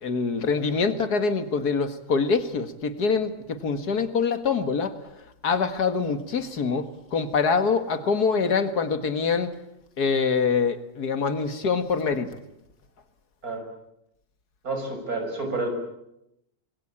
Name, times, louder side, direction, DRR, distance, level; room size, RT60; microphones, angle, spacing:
voice 1, 0.0-9.5 10.0-12.4, left 5 dB, 85° left, 9 dB, 2.3 m, -25 dB
voice 2, 14.6-15.7, right 2 dB, 65° right, 4 dB, 6.9 m, -29 dB
26.5 x 21.0 x 8.8 m, 0.82 s
omnidirectional pair, 1.6 m